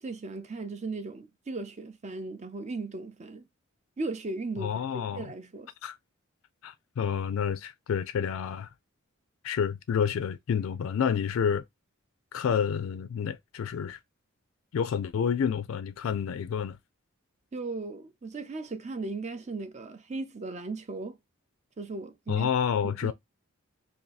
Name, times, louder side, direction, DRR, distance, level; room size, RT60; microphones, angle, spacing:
voice 1, 0.0-3.4 4.0-5.7 17.5-21.2 21.8-22.5 22.8-23.1, right 3 dB, 35° right, 0.5 m, -37 dB
voice 2, 4.6-5.3 5.8-6.0 6.6-8.7 9.4-11.6 12.3-14.0 14.7-16.8 22.3-23.1, left 7 dB, 75° left, 0.3 m, -29 dB
2.7 x 2.6 x 3.9 m
head